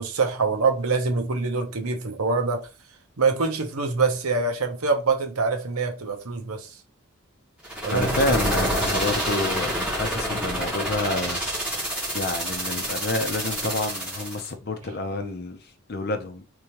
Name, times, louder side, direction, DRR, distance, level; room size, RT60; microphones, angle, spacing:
voice 1, 0.0-2.7 3.2-6.8 7.8-8.4, right 4 dB, 90° right, 0.9 m, -25 dB
sound 1, 7.6-14.5, equal, 5° right, 1.8 m, -28 dB
voice 2, 7.9-11.4 12.1-15.6 15.9-16.4, left 2 dB, 50° left, 0.7 m, -28 dB
3.6 x 3.3 x 3.0 m
head